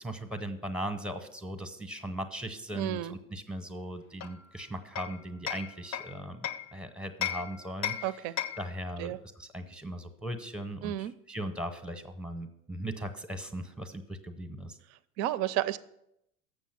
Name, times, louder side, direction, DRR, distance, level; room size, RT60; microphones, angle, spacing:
voice 1, 0.0-8.1 8.6-14.8, right 1 dB, ahead, 9 dB, 0.7 m, -38 dB
voice 2, 2.7-3.1 8.0-8.3 9.0-9.2 10.8-11.1 15.2-15.8, right 13 dB, 35° right, 17 dB, 0.4 m, -31 dB
Hammer, 4.2-6.7 7.2-8.8, left 10 dB, 40° left, 0.6 m, -36 dB
7.3 x 6.4 x 6.0 m, 0.79 s
hypercardioid pair, 95°, 45 cm